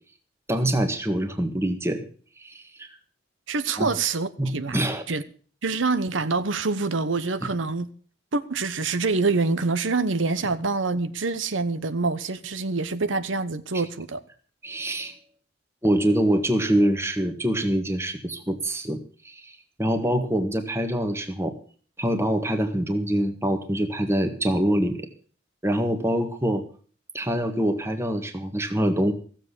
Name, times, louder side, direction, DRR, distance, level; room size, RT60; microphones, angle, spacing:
voice 1, 0.5-2.1 2.4-2.9 3.8-3.9 4.4-5.0 13.7-13.8 14.6-15.1 15.8-19.0 19.2-19.5 19.8-21.5 22.0-25.1 25.6-26.6 27.1-29.1, right 1 dB, 15° right, 1.6 m, -25 dB
voice 2, 3.5-4.8 5.1-5.2 5.6-7.9 8.3-14.2, right 3 dB, 80° right, 1.0 m, -26 dB
15.5 x 7.5 x 8.2 m
head